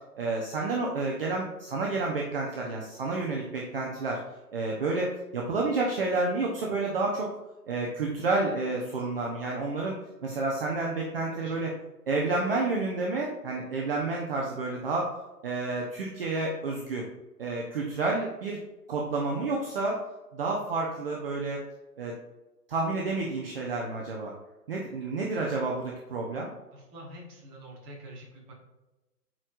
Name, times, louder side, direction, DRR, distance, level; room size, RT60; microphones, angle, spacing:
voice 1, 0.2-4.2 4.5-7.3 7.7-9.9 10.2-11.7 12.1-15.1 15.4-17.1 17.4-18.6 18.9-20.0 20.3-21.6 22.0-22.1 22.7-24.3 24.7-26.5, right 3 dB, 35° right, -1 dB, 0.9 m, -30 dB
voice 2, 26.7-28.5, right 1 dB, 20° right, -3 dB, 1.4 m, -46 dB
8.6 x 4.7 x 2.5 m, 1.1 s
figure-of-eight pair, 140°, 49 cm